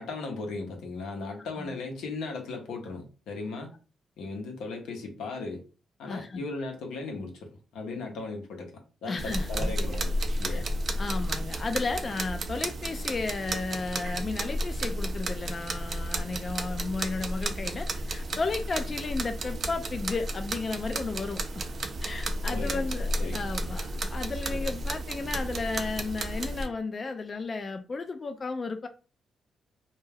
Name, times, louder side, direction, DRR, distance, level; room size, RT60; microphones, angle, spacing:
voice 1, 0.0-3.7 4.2-5.6 6.0-8.7 9.0-10.7 22.5-23.7 24.5-24.7, left 3 dB, 90° left, 0.6 m, -37 dB
voice 2, 6.1-6.4 9.1-9.7 10.5-10.6 11.0-21.7 22.0-28.9, left 3 dB, 40° left, 0.3 m, -33 dB
sound 1, 9.2-26.7, right 1 dB, 55° right, 0.4 m, -32 dB
2.2 x 2.2 x 3.2 m
cardioid pair, 70°, 0 cm